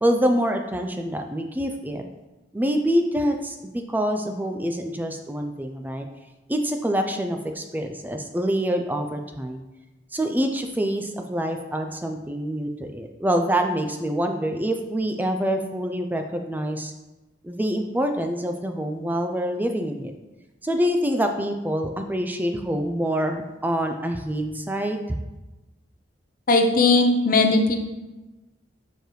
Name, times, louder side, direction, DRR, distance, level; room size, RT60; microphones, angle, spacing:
voice 1, 0.0-2.0 2.5-3.6 3.9-6.1 6.5-9.6 10.1-16.9 17.4-20.1 20.6-25.0, equal, 10° right, 5 dB, 0.4 m, -26 dB
voice 2, 26.5-27.8, left 3 dB, 50° left, 5 dB, 0.7 m, -18 dB
6.7 x 4.9 x 3.1 m, 1.1 s
head